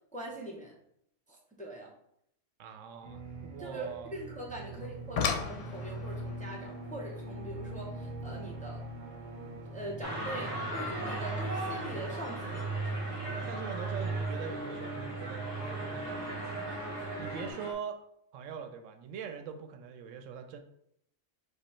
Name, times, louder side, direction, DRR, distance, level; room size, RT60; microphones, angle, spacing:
voice 1, 0.1-0.7 1.3-1.9 3.6-8.8 9.7-12.6, right 1 dB, 10° left, -3 dB, 0.6 m, -42 dB
voice 2, 2.6-4.2 4.6-4.8 13.5-16.2 17.2-18.0 18.3-20.6, right 7 dB, 85° right, 7 dB, 0.9 m, -42 dB
sound 1, 3.0-17.5, right 3 dB, 45° right, 0.7 m, -40 dB
sound 2, 4.8-9.9 11.3-11.4 12.0-12.2 12.5-12.6, left 6 dB, 65° left, 0.8 m, -38 dB
sound 3, 10.0-17.7, right 1 dB, 20° right, 1.0 m, -39 dB
5.1 x 2.3 x 4.2 m, 0.74 s
omnidirectional pair, 1.3 m